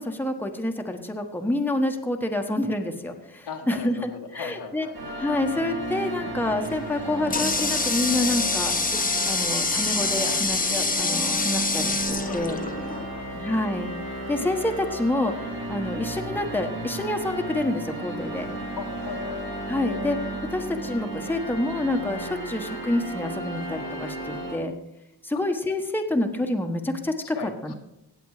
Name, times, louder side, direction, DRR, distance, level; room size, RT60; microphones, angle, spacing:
voice 1, 0.0-4.9 5.2-8.7 9.3-12.5 13.3-13.9 14.3-15.3 15.7-18.5 19.7-20.2 20.5-24.7 25.2-27.4 27.6-27.7, left 1 dB, 5° left, 4 dB, 1.2 m, -27 dB
voice 2, 3.5-5.0 12.2-13.3 18.8-19.4 27.3-27.7, left 6 dB, 80° left, 2 dB, 1.9 m, -38 dB
sound 1, 4.9-24.5, right 1 dB, 65° right, 4.7 m, -34 dB
Water tap faucet, 6.6-13.1, left 3 dB, 20° left, 1.1 m, -26 dB
17.0 x 7.8 x 4.9 m, 0.87 s
cardioid pair, 95°, 39 cm